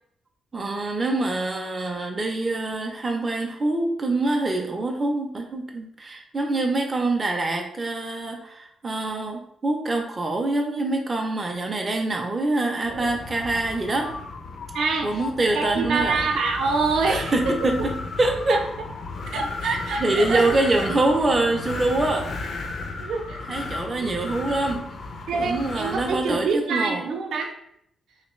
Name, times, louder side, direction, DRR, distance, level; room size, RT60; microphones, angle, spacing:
voice 1, 0.5-14.1 15.0-16.2 17.0-18.6 20.0-22.3 23.5-24.9 25.3-27.1, right 2 dB, 20° right, 2 dB, 0.4 m, -25 dB
Wind, 12.8-26.5, left 3 dB, 50° left, 0.4 m, -34 dB
voice 2, 14.7-15.2 15.5-17.9 18.5-18.6 19.3-20.6 22.5-22.7 23.0-23.5 24.0-24.2 25.3-27.5, right 4 dB, 70° right, 2 dB, 0.5 m, -26 dB
3.1 x 2.9 x 3.0 m, 0.75 s
cardioid pair, 160°, 0 cm